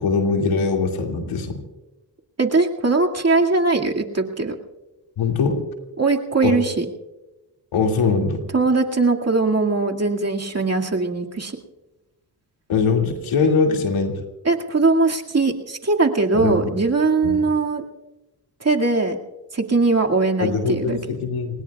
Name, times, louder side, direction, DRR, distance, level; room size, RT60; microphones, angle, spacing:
voice 1, 0.0-1.6 5.2-5.6 6.4-6.6 7.7-8.4 12.7-14.1 16.3-16.7 17.2-17.4 20.4-21.6, left 4 dB, 85° left, 3 dB, 2.5 m, -21 dB
voice 2, 2.4-4.6 6.0-6.9 8.5-11.6 14.5-17.8 18.6-19.2 19.5-21.0, right 3 dB, 30° right, 1 dB, 2.2 m, -20 dB
29.5 x 20.0 x 2.4 m, 1.0 s
supercardioid pair, 50°, 48 cm